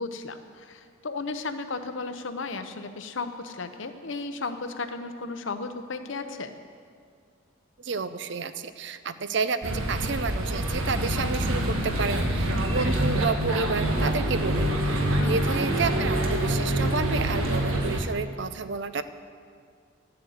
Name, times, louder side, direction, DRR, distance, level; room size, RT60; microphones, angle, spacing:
voice 1, 0.0-6.5 15.2-15.4, left 3 dB, 70° left, 9 dB, 0.8 m, -34 dB
voice 2, 7.8-14.9 15.2-19.0, right 4 dB, 60° right, 12 dB, 0.5 m, -30 dB
sound 1, 9.6-18.0, right 1 dB, 85° right, 1.4 m, -26 dB
12.5 x 7.8 x 7.9 m, 2.1 s
head